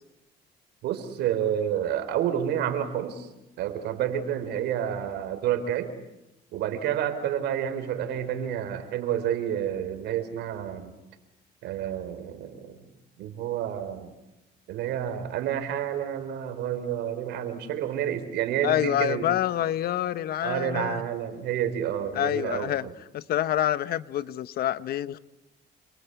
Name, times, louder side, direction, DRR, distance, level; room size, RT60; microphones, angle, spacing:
voice 1, 0.8-3.3 3.6-5.9 6.5-10.9 11.6-12.8 13.2-14.1 14.7-19.3 20.4-22.9, right 10 dB, 80° right, 10 dB, 4.1 m, -29 dB
voice 2, 18.6-21.0 22.1-22.9 23.1-25.2, left 12 dB, 65° left, 15 dB, 1.1 m, -27 dB
28.5 x 24.0 x 8.2 m, 0.97 s
cardioid pair, 110°, 17 cm